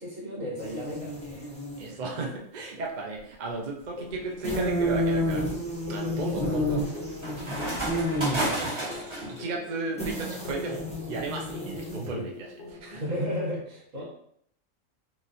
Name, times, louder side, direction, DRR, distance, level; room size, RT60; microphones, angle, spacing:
voice 1, 0.0-1.5 1.9-2.0 11.9-12.2 13.0-14.0, equal, 70° right, -6 dB, 1.9 m, -34 dB
House Fly, 0.6-1.9 4.4-8.8 10.0-12.2, equal, 5° left, 0.5 m, -30 dB
voice 2, 1.8-5.5 5.9-6.9 8.0-8.4 9.3-13.2, right 3 dB, 50° right, 0 dB, 0.6 m, -35 dB
sound 1, 3.8-4.2 4.8-9.4, right 1 dB, 25° right, 1.1 m, -33 dB
sound 2, 4.0-13.3, left 3 dB, 50° left, 0.7 m, -44 dB
3.9 x 3.1 x 2.6 m, 0.68 s
omnidirectional pair, 1.4 m